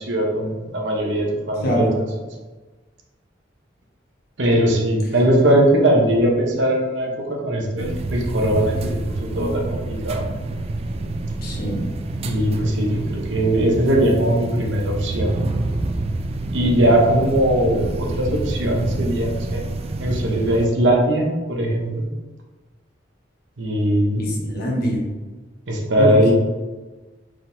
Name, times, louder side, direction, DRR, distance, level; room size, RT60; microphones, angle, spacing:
voice 1, 0.0-1.9 4.4-10.2 12.2-15.3 16.5-19.6 20.0-22.1 23.6-24.3 25.7-26.3, right 1 dB, 75° right, 0 dB, 0.9 m, -20 dB
voice 2, 1.6-2.0 11.4-11.8 24.2-25.0 26.0-26.3, equal, 55° left, -3 dB, 1.2 m, -23 dB
sound 1, 7.8-20.7, right 2 dB, 35° right, 0.3 m, -27 dB
4.6 x 3.8 x 2.7 m, 1.3 s
head